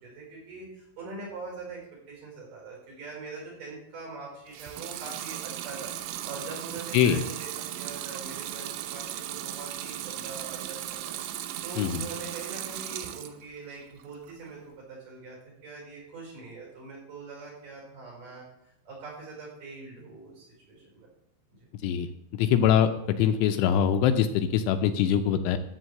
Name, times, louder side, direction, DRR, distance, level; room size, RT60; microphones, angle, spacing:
voice 1, 0.0-1.8 2.1-5.9 6.2-11.1 11.6-18.5 18.8-21.1 21.5-21.7, right 3 dB, 45° right, -2 dB, 6.2 m, -42 dB
Water tap faucet / Sink (filling or washing) / Liquid, 4.5-13.4 13.8-14.5, right 12 dB, 80° right, 3.1 m, -37 dB
voice 2, 22.3-25.6, left 9 dB, 80° left, 8 dB, 2.9 m, -23 dB
14.5 x 4.9 x 7.7 m, 0.80 s
omnidirectional pair, 5.5 m